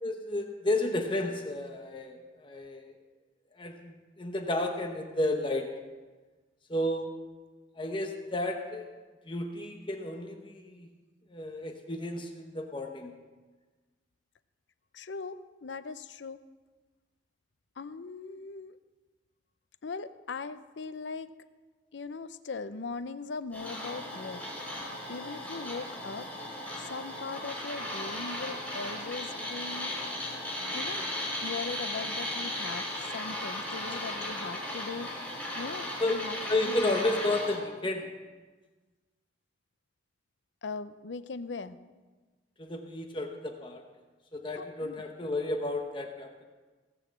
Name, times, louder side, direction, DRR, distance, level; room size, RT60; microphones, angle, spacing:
voice 1, 0.0-2.9 3.6-5.7 6.7-7.1 7.8-8.8 9.3-10.9 11.3-13.2 33.9-34.0 36.0-36.2 36.5-38.1 42.6-43.8 44.3-46.5, left 1 dB, 30° left, 4 dB, 1.0 m, -32 dB
voice 2, 14.9-16.4 17.8-18.8 19.8-21.3 21.9-24.4 25.1-26.3 26.8-29.9 30.7-31.1 31.4-35.3 35.6-36.8 40.6-41.8 44.6-45.0, left 4 dB, 90° left, 13 dB, 0.6 m, -40 dB
sound 1, 23.5-37.6, left 1 dB, 5° left, 5.0 m, -36 dB
17.5 x 6.3 x 7.5 m, 1.3 s
head